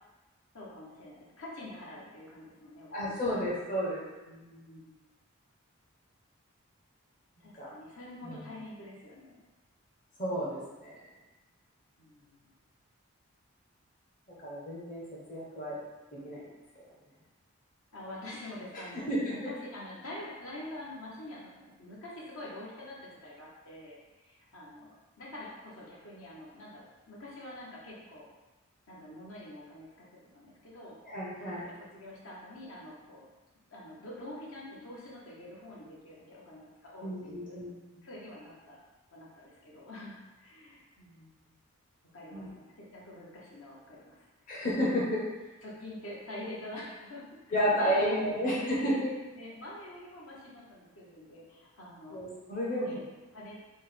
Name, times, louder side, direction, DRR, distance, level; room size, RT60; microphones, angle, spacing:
voice 1, 0.5-3.4 4.3-5.0 7.4-9.4 12.0-12.5 17.9-28.3 28.9-31.0 31.4-33.3 33.7-37.6 38.0-38.8 39.1-41.5 42.1-44.6 45.6-48.5 49.3-52.2 52.8-53.0 53.3-53.6, left 1 dB, 70° left, -5 dB, 0.8 m, -46 dB
voice 2, 2.9-4.0 7.4-7.7 8.2-8.4 10.2-11.0 14.4-15.0 15.3-15.8 16.2-16.5 18.9-19.5 31.0-31.7 37.0-37.7 42.3-42.5 44.5-45.2 47.5-49.1 52.1-53.0, equal, 35° left, -6 dB, 0.7 m, -31 dB
4.2 x 2.1 x 3.4 m, 1.1 s
head